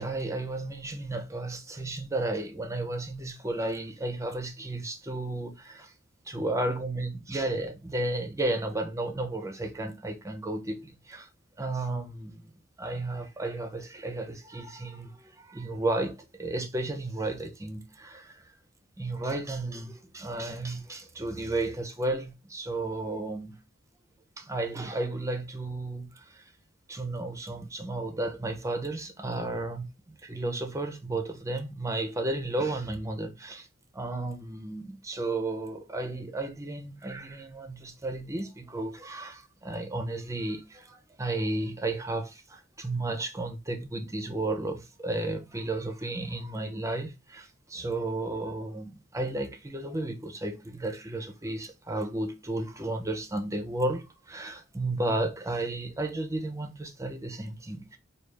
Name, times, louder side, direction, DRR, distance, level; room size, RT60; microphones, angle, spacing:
voice 1, 0.0-5.9 6.3-11.3 11.6-12.5 12.8-18.4 19.0-23.6 24.4-26.5 26.9-33.7 33.9-58.0, right 2 dB, 15° right, 0.6 m, -33 dB
4.9 x 2.4 x 3.3 m
head